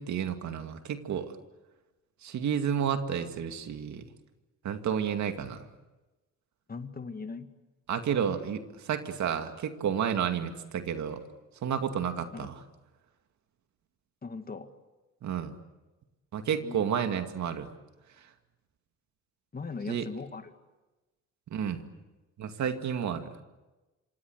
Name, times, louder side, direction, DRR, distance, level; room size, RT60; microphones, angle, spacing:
voice 1, 0.0-1.3 2.2-4.0 4.6-5.6 7.9-11.2 11.6-12.5 15.2-15.5 16.3-17.7 19.9-20.1 21.5-21.8 22.4-23.3, right 8 dB, 70° right, 7 dB, 2.3 m, -31 dB
voice 2, 6.7-7.5 12.3-12.5 14.2-14.7 16.6-17.2 19.5-20.5, left 4 dB, 30° left, 8 dB, 2.1 m, -40 dB
27.0 x 25.5 x 8.0 m, 1.1 s
cardioid pair, 90°, 30 cm